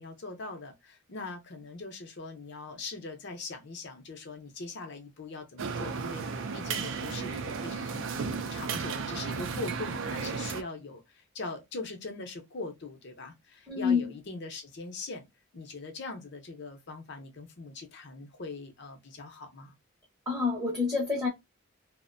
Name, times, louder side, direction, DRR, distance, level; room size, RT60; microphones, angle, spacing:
voice 1, 0.0-15.2 15.5-19.7, left 3 dB, 55° left, 0.7 m, -41 dB
sound 1, 5.6-10.6, right 5 dB, 60° right, 0.4 m, -34 dB
voice 2, 13.7-14.1 20.3-21.3, left 5 dB, 15° right, 0.7 m, -27 dB
2.5 x 2.1 x 2.5 m
head